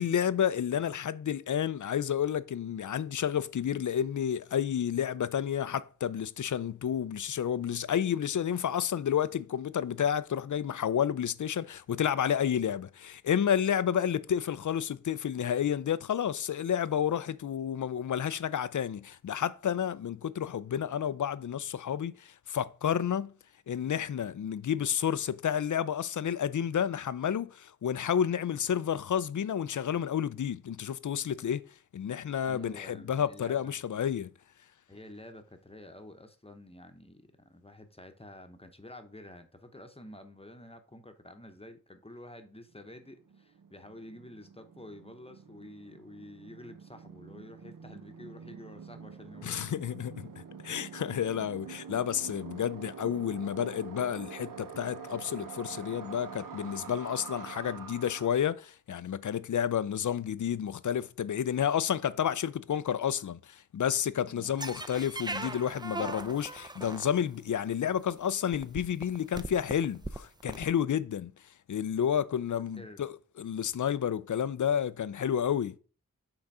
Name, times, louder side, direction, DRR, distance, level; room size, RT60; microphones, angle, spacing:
voice 1, 0.0-23.3 23.7-31.6 31.9-34.3 49.4-50.3 50.6-71.3 71.7-73.1 73.4-75.8, left 9 dB, 65° left, 0.4 m, -30 dB
voice 2, 32.4-33.8 34.9-49.6 64.3-64.5 72.7-73.1, left 1 dB, 15° left, 0.9 m, -49 dB
sound 1, 43.0-58.3, right 6 dB, 75° right, 0.8 m, -46 dB
sound 2, 64.6-67.5 68.2-68.3 68.5-70.6, right 2 dB, 15° right, 0.5 m, -39 dB
6.0 x 3.8 x 5.5 m
wide cardioid pair, 60°, 33 cm